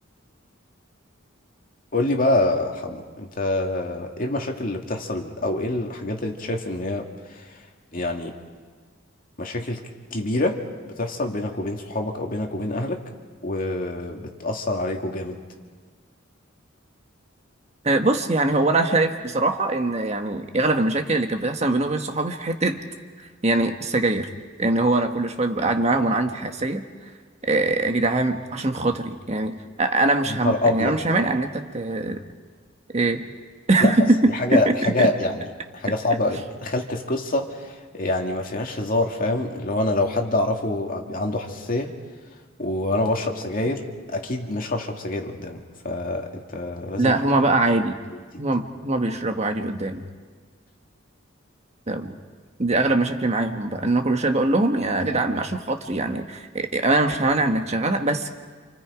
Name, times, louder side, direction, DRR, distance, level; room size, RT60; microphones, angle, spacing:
voice 1, 1.9-7.6 7.9-8.3 9.4-9.8 10.1-10.6 11.0-13.0 13.4-15.4 30.3-31.0 33.8-33.9 34.3-35.5 35.7-41.9 42.6-47.1, left 2 dB, 45° left, 2 dB, 2.3 m, -26 dB
voice 2, 17.8-22.8 23.2-24.3 24.6-26.8 27.4-32.2 32.9-33.3 33.7-35.1 47.0-48.0 48.4-50.0 51.9-52.2 52.6-58.3, right 2 dB, 35° right, 5 dB, 1.4 m, -22 dB
28.5 x 28.0 x 5.1 m, 1.5 s
head